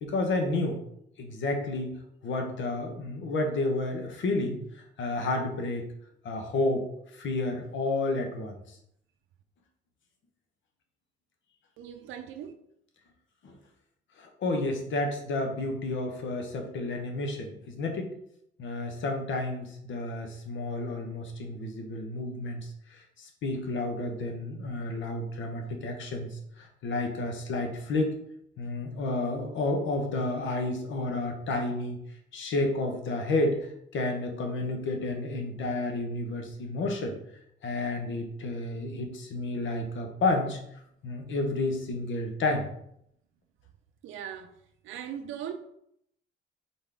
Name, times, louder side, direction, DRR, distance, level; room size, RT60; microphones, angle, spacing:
voice 1, 0.0-0.8 1.2-5.8 6.2-6.9 7.1-8.5 13.4-13.5 14.2-18.1 18.6-28.1 28.6-32.0 32.3-37.2 37.6-40.6 41.0-42.7, left 2 dB, 70° left, 1.0 m, -31 dB
voice 2, 11.8-12.5 44.0-44.5 44.8-45.5, right 9 dB, 85° right, 0.5 m, -39 dB
4.1 x 3.7 x 3.5 m
cardioid pair, 90°, 20 cm